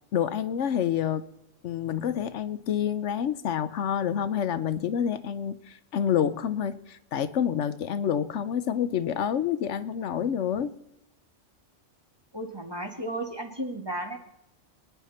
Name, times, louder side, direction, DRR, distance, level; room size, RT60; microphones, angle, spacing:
voice 1, 0.1-1.2 1.6-10.7, left 9 dB, 75° left, 13 dB, 1.0 m, -28 dB
voice 2, 12.3-14.2, right 1 dB, 20° right, 2 dB, 1.9 m, -34 dB
24.0 x 10.0 x 4.3 m, 0.83 s
omnidirectional pair, 1.2 m